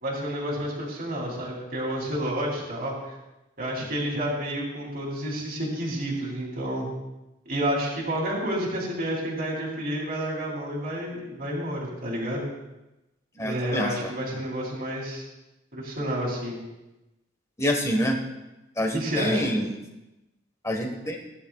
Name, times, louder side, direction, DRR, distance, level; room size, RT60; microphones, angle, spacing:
voice 1, 0.0-2.9 3.6-6.9 7.4-12.4 13.4-15.2 15.7-16.6 18.9-19.5, right 1 dB, 50° right, -2 dB, 3.1 m, -30 dB
voice 2, 13.3-14.1 17.6-18.2 18.8-19.8 20.6-21.2, equal, 15° left, 2 dB, 1.4 m, -26 dB
18.0 x 10.5 x 2.4 m, 0.97 s
head